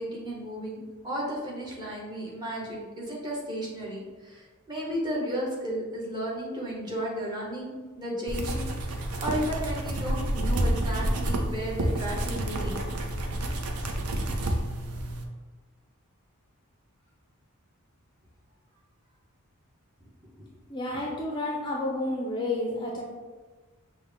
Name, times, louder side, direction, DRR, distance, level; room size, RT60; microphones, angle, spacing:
voice 1, 0.0-12.8 13.8-13.9, equal, 20° right, -5 dB, 1.0 m, -34 dB
sound 1, 8.3-15.2, right 1 dB, 80° right, 0.5 m, -29 dB
voice 2, 20.7-23.0, left 2 dB, 20° left, -2 dB, 0.4 m, -30 dB
5.6 x 2.1 x 3.5 m, 1.3 s
head